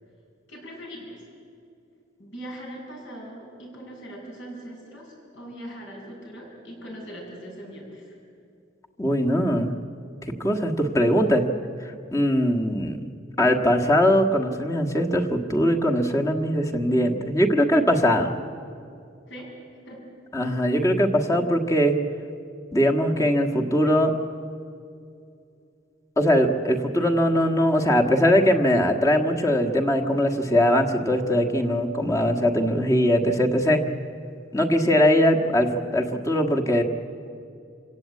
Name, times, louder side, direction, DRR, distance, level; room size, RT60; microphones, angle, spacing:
voice 1, 0.5-1.2 2.2-8.2 19.3-19.5 19.8-20.0, equal, 65° left, -2 dB, 7.2 m, -40 dB
voice 2, 9.0-9.8 10.4-11.4 12.1-13.0 13.4-18.3 20.3-21.9 22.7-24.1 26.2-33.8 34.5-36.8, equal, 15° left, 1 dB, 1.6 m, -21 dB
27.0 x 17.0 x 8.5 m, 2.5 s
head